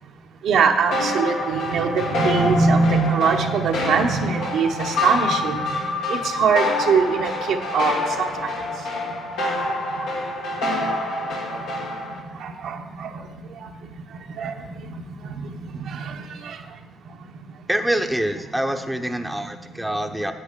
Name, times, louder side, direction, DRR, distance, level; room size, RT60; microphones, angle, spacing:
voice 1, 0.4-8.9 9.7-10.1 10.5-10.9 11.4-11.7 12.0-16.8 17.0-17.2 17.5-17.7, right 5 dB, 75° right, 4 dB, 0.8 m, -24 dB
sound 1, 0.9-12.2, left 2 dB, 90° left, 1.8 m, -26 dB
voice 2, 17.7-20.3, right 1 dB, 5° right, 5 dB, 0.7 m, -25 dB
10.0 x 8.3 x 3.6 m, 1.1 s
cardioid pair, 90°, 0 cm